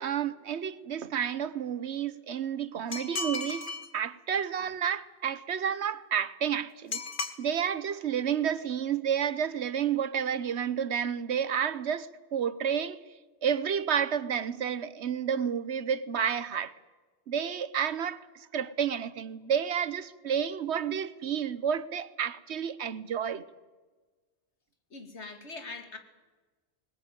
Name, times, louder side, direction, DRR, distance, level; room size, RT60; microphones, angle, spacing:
voice 1, 0.0-3.7 3.9-7.0 7.4-13.0 13.4-16.7 17.3-23.4, right 8 dB, 75° right, 1.2 m, -30 dB
sound 1, 2.9-3.9 6.9-7.4, left 3 dB, 50° left, 1.7 m, -34 dB
voice 2, 24.9-26.0, left 3 dB, 80° left, 2.6 m, -42 dB
20.5 x 19.5 x 9.2 m
omnidirectional pair, 1.1 m